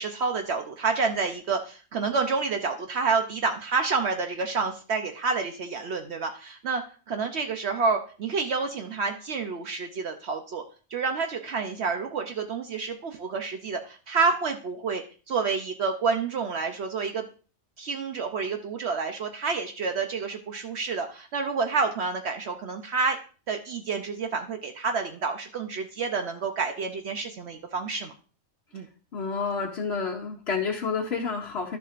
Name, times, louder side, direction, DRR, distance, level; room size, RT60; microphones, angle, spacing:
voice 1, 0.0-6.8 7.1-10.6 10.9-17.2 17.8-23.2 23.5-28.1 28.7-28.9, right 4 dB, 65° right, 5 dB, 0.9 m, -29 dB
voice 2, 29.1-31.8, left 5 dB, 60° left, -1 dB, 1.1 m, -29 dB
11.5 x 7.0 x 2.5 m, 0.38 s
omnidirectional pair, 1.3 m